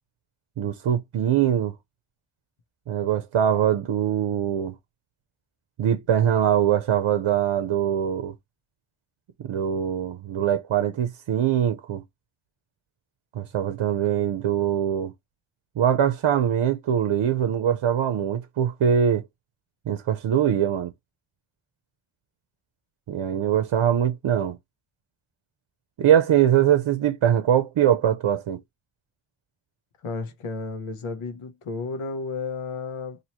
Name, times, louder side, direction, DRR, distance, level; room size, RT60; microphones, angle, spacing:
voice 1, 0.6-1.7 2.9-4.7 5.8-8.3 9.4-12.0 13.3-15.1 15.8-19.2 19.9-20.9 23.1-24.6 26.0-28.6, right 9 dB, 65° right, 0.7 m, -22 dB
voice 2, 30.0-33.2, left 4 dB, 80° left, 1.0 m, -32 dB
3.0 x 2.7 x 4.1 m
wide cardioid pair, 155°, 49 cm